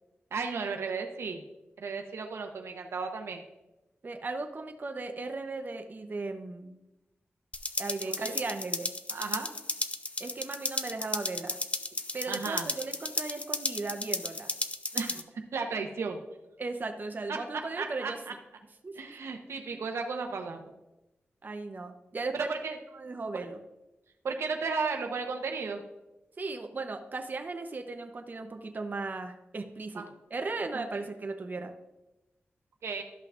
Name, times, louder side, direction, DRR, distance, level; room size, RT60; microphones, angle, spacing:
voice 1, 0.3-1.4 1.8-3.4 8.1-8.4 9.1-9.5 12.3-12.7 14.9-15.2 15.5-16.2 17.3-18.1 18.9-20.7 22.3-22.8 24.2-25.8 29.9-30.1 30.7-31.0 32.8-33.0, right 4 dB, 85° right, 3 dB, 0.8 m, -34 dB
voice 2, 4.0-6.8 7.8-8.9 10.2-11.6 12.1-14.5 16.6-18.2 18.8-19.0 21.4-22.5 22.9-23.6 26.4-31.7, right 3 dB, 45° right, 5 dB, 0.7 m, -37 dB
sound 1, 7.5-15.2, left 2 dB, 30° left, 0.5 m, -34 dB
12.5 x 5.6 x 2.5 m, 0.97 s
cardioid pair, 70°, 4 cm